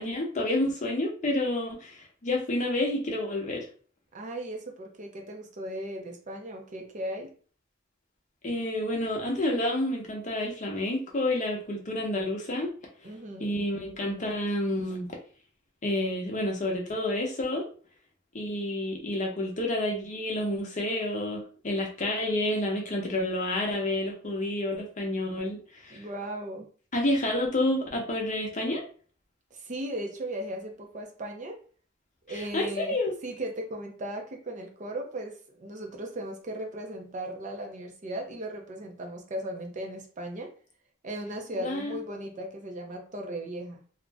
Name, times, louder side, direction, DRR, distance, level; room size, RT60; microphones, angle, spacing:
voice 1, 0.0-3.6 8.4-12.7 13.4-15.1 15.8-17.7 18.3-25.6 25.8-26.0 26.9-28.8 32.5-33.1 41.5-42.0, left 1 dB, 35° left, 0 dB, 0.7 m, -29 dB
voice 2, 4.1-7.3 13.0-13.5 25.9-26.7 29.5-31.6 32.3-33.0 33.2-40.5 41.0-43.8, right 1 dB, 35° right, 3 dB, 0.5 m, -37 dB
2.4 x 2.1 x 3.3 m, 0.42 s
head